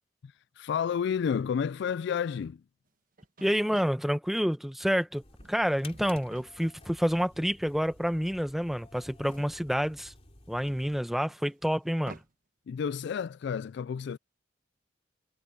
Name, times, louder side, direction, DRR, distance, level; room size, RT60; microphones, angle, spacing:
voice 1, 0.2-2.6 12.7-14.2, left 7 dB, 65° left, 0.3 m, -31 dB
sound 1, 2.9-3.0 3.2-4.1 5.2-5.6 5.9-6.5 7.4-7.5 9.0-10.2 11.3-12.3, right 3 dB, 50° right, 1.3 m, -51 dB
voice 2, 3.4-10.1 10.5-12.2, equal, ahead, 0.9 m, -28 dB
sound 2, 5.1-11.0, left 2 dB, 35° left, 3.0 m, -53 dB
head